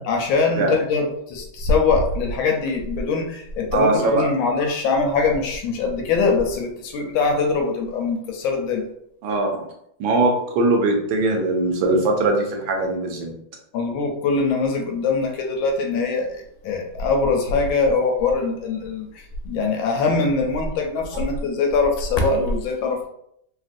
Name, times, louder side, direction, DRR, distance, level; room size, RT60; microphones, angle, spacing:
voice 1, 0.1-8.8 13.7-23.1, left 4 dB, 75° left, 2 dB, 1.4 m, -22 dB
voice 2, 3.7-4.3 9.2-9.5 10.0-13.3, right 2 dB, 75° right, 1 dB, 1.3 m, -20 dB
3.4 x 2.4 x 2.5 m, 0.72 s
omnidirectional pair, 2.2 m